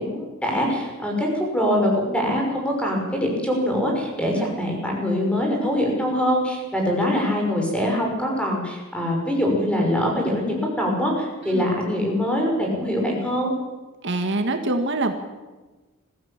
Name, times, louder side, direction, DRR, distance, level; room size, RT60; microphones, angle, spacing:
voice 1, 0.0-13.5, equal, 5° left, 0 dB, 6.0 m, -23 dB
voice 2, 14.0-15.1, right 2 dB, 60° right, 6 dB, 1.8 m, -25 dB
21.0 x 15.0 x 8.9 m, 1.2 s
head